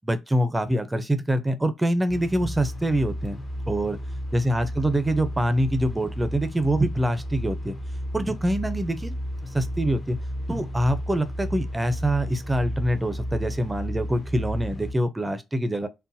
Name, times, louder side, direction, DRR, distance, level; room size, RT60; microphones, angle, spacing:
voice 1, 0.0-3.4 3.7-4.0 4.3-7.8 8.1-9.1 9.5-10.2 10.5-15.9, right 1 dB, 15° right, 0.6 m, -25 dB
sound 1, 2.1-14.9, equal, 35° left, 0.8 m, -33 dB
3.9 x 2.1 x 2.6 m
supercardioid pair, 55°, 0 cm